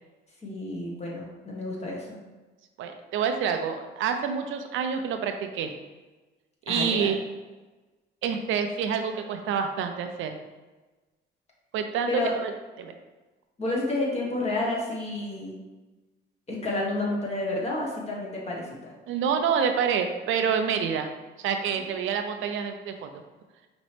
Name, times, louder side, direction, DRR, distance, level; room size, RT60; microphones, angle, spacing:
voice 1, 0.4-2.2 6.7-7.1 12.1-12.3 13.6-15.6 16.5-18.9, left 2 dB, 35° left, -3 dB, 1.4 m, -30 dB
voice 2, 2.8-5.7 6.7-7.2 8.2-10.4 11.7-12.1 12.3-12.5 12.8-12.9 19.1-21.1 21.4-23.2, right 7 dB, 80° right, 6 dB, 0.5 m, -27 dB
5.2 x 2.9 x 3.3 m, 1.2 s
cardioid pair, 90°, 20 cm